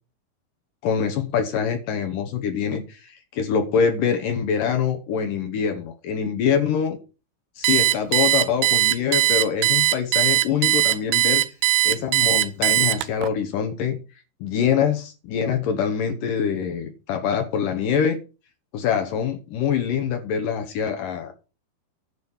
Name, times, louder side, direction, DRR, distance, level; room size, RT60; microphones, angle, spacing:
voice 1, 0.8-7.0 7.6-11.4 11.8-14.0 14.4-18.2 18.7-21.3, left 7 dB, 75° left, 6 dB, 2.0 m, -24 dB
Alarm, 7.6-13.3, right 16 dB, 85° right, 2.3 m, -19 dB
11.5 x 4.2 x 7.1 m, 0.32 s
omnidirectional pair, 5.4 m